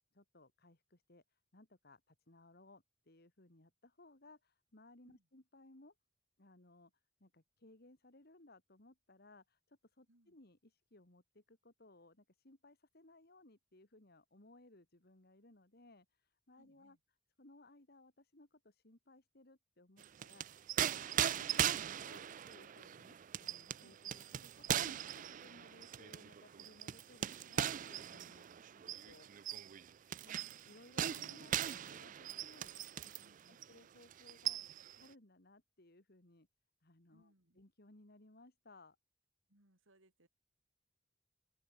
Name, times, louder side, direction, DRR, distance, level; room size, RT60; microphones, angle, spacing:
voice 1, 0.1-5.9 6.4-17.0 17.4-29.5 30.2-30.3 30.7-33.1 33.5-36.5 36.8-39.0, left 2 dB, 50° left, 2.4 m, -63 dB
voice 2, 16.5-17.0 23.8-24.1 33.2-33.7 37.1-37.6 39.5-40.3, right 1 dB, 85° right, 4.5 m, -71 dB
sound 1, 20.0-33.3 33.6-33.8 34.1-35.0, right 10 dB, 40° right, 0.4 m, -39 dB
open air
head